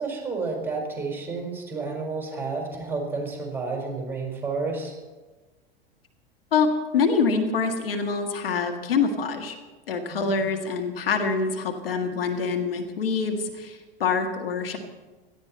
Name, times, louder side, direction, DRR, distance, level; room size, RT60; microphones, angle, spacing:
voice 1, 0.0-5.0 10.1-10.5, right 4 dB, 5° right, 0 dB, 4.8 m, -31 dB
voice 2, 6.9-9.5 9.9-14.8, left 5 dB, 75° left, 5 dB, 1.6 m, -25 dB
17.5 x 13.5 x 4.4 m, 1.2 s
figure-of-eight pair, 85°, 30 cm